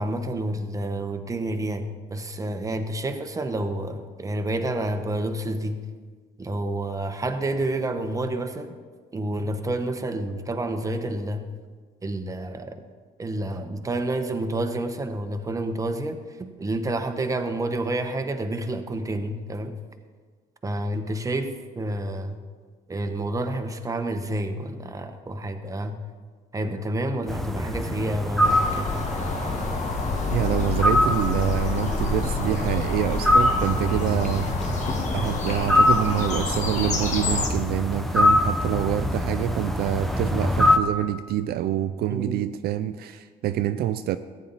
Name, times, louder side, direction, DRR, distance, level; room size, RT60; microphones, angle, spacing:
voice 1, 0.0-5.8 6.4-8.8 9.1-11.4 12.0-12.8 13.2-19.7 20.6-22.4 22.9-26.0 26.5-29.0 42.1-42.4, right 1 dB, 20° right, 7 dB, 1.0 m, -29 dB
sound 1, 27.3-40.8, left 1 dB, ahead, 0.9 m, -25 dB
sound 2, 28.4-37.5, left 3 dB, 45° left, 1.6 m, -28 dB
voice 2, 30.3-34.8 35.1-44.2, right 12 dB, 70° right, 11 dB, 0.5 m, -26 dB
14.5 x 9.4 x 4.1 m, 1.5 s
cardioid pair, 110°, 17 cm